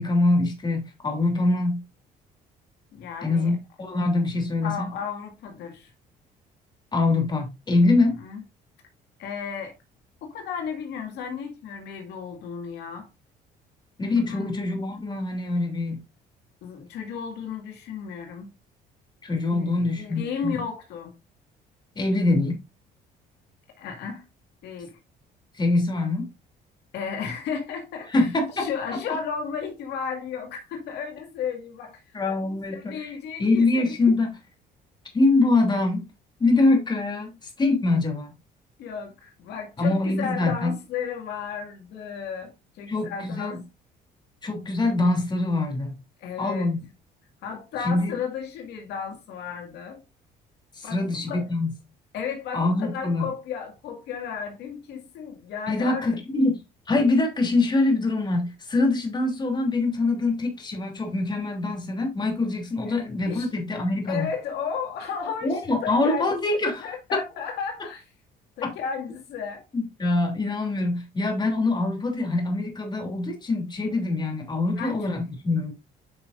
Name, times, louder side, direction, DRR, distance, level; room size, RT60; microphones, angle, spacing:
voice 1, 0.0-1.8 3.2-4.9 6.9-8.2 14.0-16.0 19.2-20.6 21.9-22.6 25.5-26.3 28.1-29.0 32.1-34.4 35.1-36.0 36.4-38.3 39.8-40.7 42.9-43.6 44.4-46.0 46.4-46.8 47.8-48.2 50.7-51.7 52.5-53.3 55.7-56.6 56.9-64.3 65.4-67.2 68.6-68.7 69.7-75.7, left 2 dB, 25° left, 2.9 m, -24 dB
voice 2, 2.9-3.6 4.6-5.9 8.2-8.4 9.2-9.8 10.2-13.1 14.3-14.5 16.6-18.5 19.5-21.1 23.8-24.2 24.6-25.0 26.9-28.3 28.6-32.0 32.7-33.9 38.8-42.5 42.8-43.6 46.2-46.7 47.4-50.0 50.8-51.5 52.1-56.1 62.9-63.0 63.3-63.5 64.1-66.2 66.8-68.0 68.6-69.6 74.7-75.1, left 6 dB, 80° left, 2.0 m, -34 dB
9.2 x 5.6 x 2.5 m
cardioid pair, 110°, 17 cm